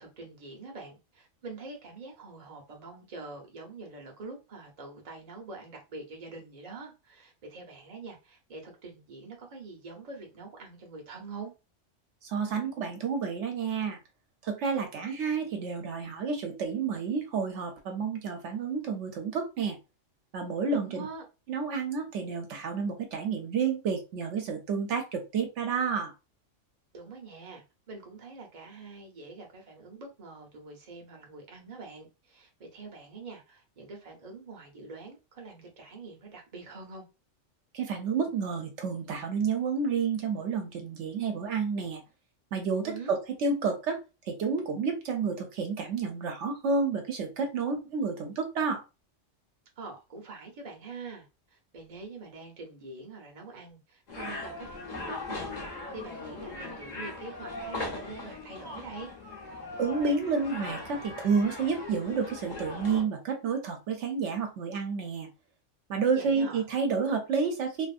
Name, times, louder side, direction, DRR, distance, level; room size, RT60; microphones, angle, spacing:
voice 1, 0.0-11.5 20.7-21.2 26.9-37.1 42.8-43.1 49.8-51.3 51.5-59.1 66.1-66.6, right 3 dB, 40° right, 0.7 m, -45 dB
voice 2, 12.2-14.0 14.4-19.8 20.3-21.1 21.5-26.1 37.7-42.0 42.5-44.0 44.3-48.8 59.8-65.3 65.9-67.9, right 5 dB, 70° right, 0.9 m, -30 dB
sound 1, 54.1-63.0, left 2 dB, 40° left, 0.8 m, -39 dB
2.6 x 2.5 x 2.3 m
omnidirectional pair, 1.3 m